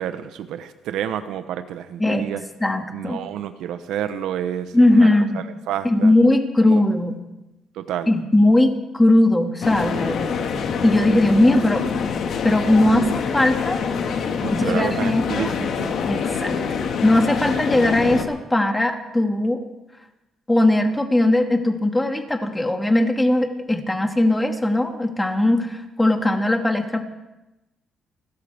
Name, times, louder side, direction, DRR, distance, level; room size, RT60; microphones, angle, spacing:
voice 1, 0.0-2.4 2.9-6.1 6.6-6.8 7.7-8.1 14.4-15.9, right 10 dB, 90° right, 10 dB, 0.9 m, -29 dB
voice 2, 2.6-3.2 4.7-5.4 5.8-7.2 8.1-10.3 10.8-12.0 12.4-13.8 14.5-15.5 16.1-16.6 17.0-19.6 20.5-27.0, left 1 dB, 10° left, 4 dB, 2.0 m, -19 dB
sound 1, 9.6-18.2, left 6 dB, 70° left, 1.7 m, -25 dB
30.0 x 13.0 x 3.5 m, 0.97 s
cardioid pair, 110°, 0 cm